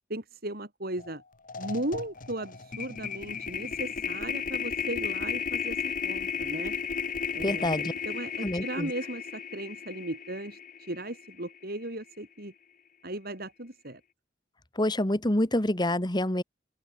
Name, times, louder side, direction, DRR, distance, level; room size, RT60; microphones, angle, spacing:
voice 1, 0.1-1.2 1.6-6.7 7.3-12.5 13.0-14.0, right 1 dB, 55° right, 6.3 m, -37 dB
sound 1, 1.0-1.1 1.4-11.7, left 6 dB, 45° left, 2.5 m, -34 dB
voice 2, 7.4-7.9 8.4-8.9 14.8-16.4, left 1 dB, 25° left, 1.9 m, -27 dB
open air
head